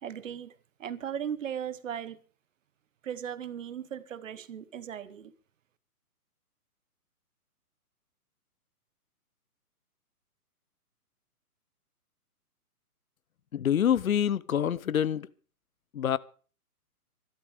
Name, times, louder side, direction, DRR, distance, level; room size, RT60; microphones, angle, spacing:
voice 1, 0.0-2.2 3.0-5.3, right 9 dB, 55° right, 1.4 m, -37 dB
voice 2, 13.5-15.3 15.9-16.2, left 9 dB, 60° left, 0.9 m, -26 dB
25.0 x 12.0 x 3.5 m
figure-of-eight pair, 135°, 46 cm